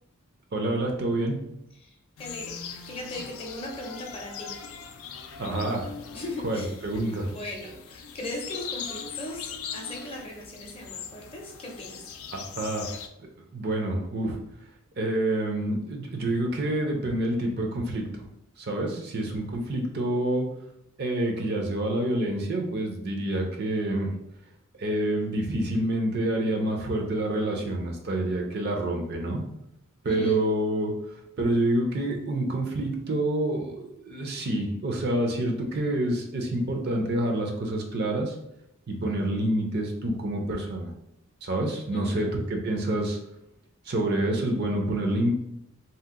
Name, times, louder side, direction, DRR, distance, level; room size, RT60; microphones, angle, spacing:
voice 1, 0.5-1.4 5.4-5.9 6.4-7.3 12.3-12.8 13.5-14.4 15.0-18.2 18.6-20.4 21.0-24.1 24.8-29.4 30.0-30.9 31.4-38.3 38.9-40.9 41.4-43.2 43.9-45.3, right 1 dB, 50° right, 2 dB, 0.5 m, -27 dB
voice 2, 1.7-2.6 2.9-4.5 6.1-12.1 30.1-30.5 41.9-42.3, left 1 dB, 25° left, 0 dB, 0.6 m, -38 dB
sound 1, 2.2-13.1, left 7 dB, 75° left, 0.3 m, -40 dB
2.8 x 2.0 x 3.5 m, 0.80 s
head